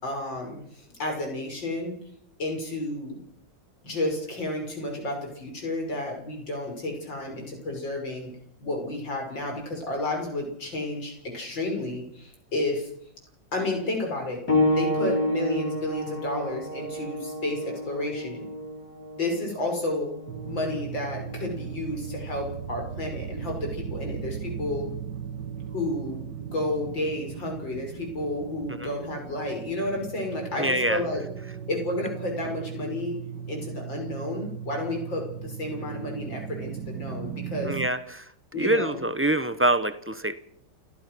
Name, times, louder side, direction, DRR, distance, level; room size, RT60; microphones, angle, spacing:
voice 1, 0.0-2.0 2.4-3.2 3.8-8.3 8.6-12.9 13.5-14.5 14.8-18.5 19.1-20.2 20.4-25.0 25.7-31.2 31.7-33.2 33.5-37.8 38.5-39.0, left 1 dB, 75° left, 2 dB, 6.5 m, -31 dB
sound 1, 14.5-24.7 25.7-25.8 26.5-26.6, left 1 dB, 55° left, 4.8 m, -31 dB
sound 2, 20.3-37.9, right 8 dB, 70° right, 1.7 m, -37 dB
voice 2, 30.6-31.0 37.7-38.3 38.6-40.4, right 1 dB, 15° right, 11 dB, 0.4 m, -25 dB
29.0 x 15.0 x 6.2 m, 0.68 s
omnidirectional pair, 2.1 m